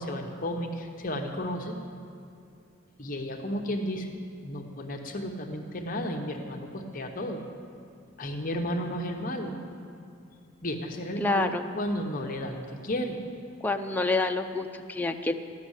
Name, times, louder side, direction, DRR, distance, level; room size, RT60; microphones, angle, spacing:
voice 1, 0.0-1.8 3.0-4.1 4.4-7.4 8.2-9.6 10.6-13.2, equal, 40° left, 2 dB, 0.9 m, -33 dB
voice 2, 11.2-11.7 13.6-15.3, left 3 dB, 10° left, 4 dB, 0.4 m, -27 dB
14.5 x 6.4 x 9.8 m, 2.6 s
head